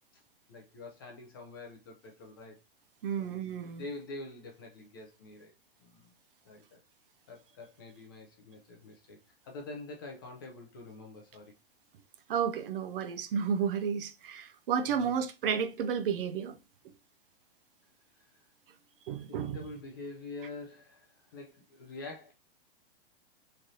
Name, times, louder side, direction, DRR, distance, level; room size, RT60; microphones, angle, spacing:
voice 1, 0.5-2.6 3.2-5.5 5.8-6.1 6.4-6.8 7.3-9.2 9.4-11.5 14.9-15.2 18.2-18.4 19.2-22.3, left 2 dB, 20° left, 0.4 m, -46 dB
voice 2, 3.0-3.8 12.3-16.6 19.1-19.6, right 7 dB, 60° right, 0.6 m, -32 dB
3.2 x 2.6 x 3.8 m
hypercardioid pair, 165°, 31 cm